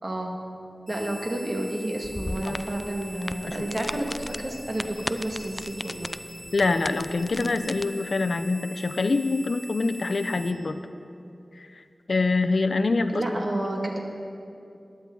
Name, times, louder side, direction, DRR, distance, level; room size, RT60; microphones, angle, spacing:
voice 1, 0.0-0.3 0.9-6.1 13.1-14.0, right 1 dB, 50° right, 0 dB, 1.8 m, -30 dB
sound 1, 0.9-10.5, equal, 10° left, 1.2 m, -44 dB
sound 2, 2.0-7.8, left 1 dB, 25° left, 0.3 m, -37 dB
voice 2, 3.5-4.0 6.5-10.8 11.6-11.7 12.1-13.2, left 3 dB, 75° left, 10 dB, 0.5 m, -25 dB
15.5 x 10.5 x 3.9 m, 2.6 s
wide cardioid pair, 50°, 0 cm